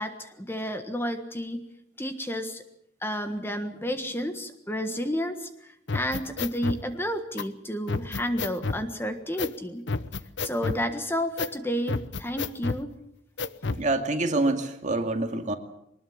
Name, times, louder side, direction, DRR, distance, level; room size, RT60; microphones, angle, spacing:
voice 1, 0.0-1.6 2.0-2.6 3.0-9.9 10.4-12.9, equal, 10° left, 7 dB, 1.5 m, -31 dB
sound 1, 5.9-6.8 7.4-7.5 7.9-8.8 9.4-9.6 9.9-10.8 11.4-11.6 11.9-12.8 13.4-13.8, left 3 dB, 65° left, 0.9 m, -30 dB
voice 2, 13.8-15.6, right 2 dB, 40° right, 5 dB, 2.3 m, -26 dB
23.0 x 20.5 x 7.2 m, 0.77 s
head